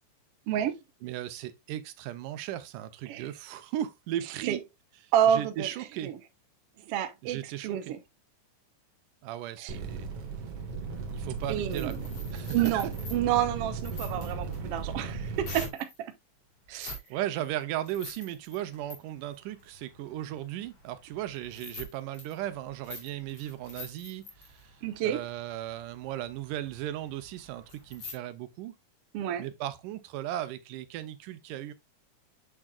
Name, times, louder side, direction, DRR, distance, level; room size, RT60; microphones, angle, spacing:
voice 1, 0.5-0.8 3.1-3.3 4.5-4.6 5.1-5.7 6.0-6.1 6.9-8.0 9.6-9.7 11.5-12.0 12.5-15.9 16.7-17.0 24.8-25.2 29.1-29.5, right 10 dB, 70° right, 1.4 m, -29 dB
voice 2, 1.0-4.6 5.3-6.1 7.2-7.9 9.2-10.1 11.1-12.0 12.3-12.9 17.1-24.8 25.0-28.8 29.4-31.7, right 12 dB, 90° right, 2.3 m, -36 dB
sound 1, 9.7-15.7, right 4 dB, 50° right, 2.5 m, -36 dB
sound 2, 11.0-16.0 16.7-17.1 17.4-28.1, left 3 dB, 45° left, 3.7 m, -47 dB
7.6 x 7.3 x 2.3 m
omnidirectional pair, 3.7 m